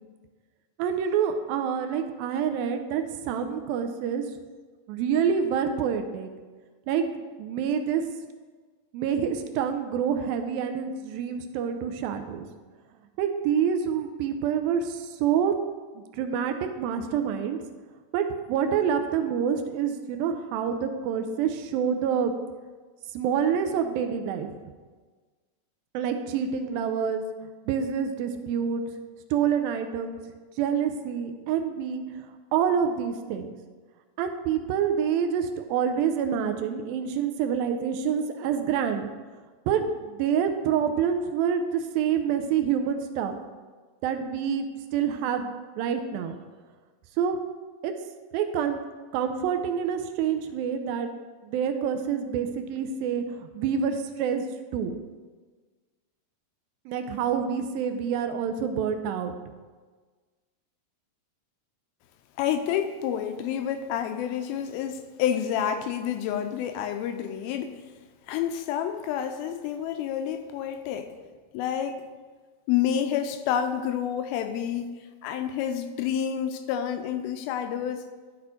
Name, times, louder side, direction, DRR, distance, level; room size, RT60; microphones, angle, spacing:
voice 1, 0.8-4.3 4.9-6.3 6.9-7.1 7.4-8.0 8.9-12.5 13.2-15.6 16.0-17.6 18.1-22.3 23.1-24.5 25.9-27.2 27.7-28.8 29.3-30.2 30.6-32.3 32.5-33.5 34.2-39.1 39.7-43.3 44.0-46.4 47.2-47.4 47.8-47.9 48.3-48.8 49.1-51.1 51.4-54.5 54.7-55.0 56.9-59.3, right 7 dB, 80° right, 7 dB, 2.4 m, -27 dB
voice 2, 62.4-67.8 68.3-71.1 71.5-72.1 72.7-74.9 75.2-78.1, left 9 dB, 85° left, 9 dB, 2.4 m, -29 dB
12.0 x 4.2 x 4.4 m, 1.4 s
omnidirectional pair, 4.2 m